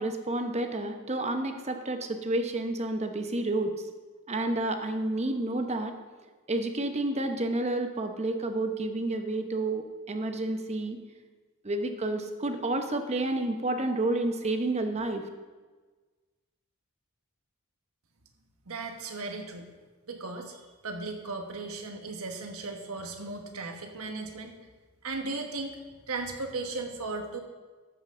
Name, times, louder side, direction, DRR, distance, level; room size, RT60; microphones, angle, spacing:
voice 1, 0.0-3.7 4.3-5.9 6.5-11.0 11.6-15.3, right 2 dB, 30° right, 6 dB, 0.9 m, -30 dB
voice 2, 18.7-19.7 20.1-24.6 25.0-27.4, right 3 dB, 80° right, 4 dB, 1.3 m, -36 dB
12.5 x 8.0 x 3.7 m, 1.4 s
head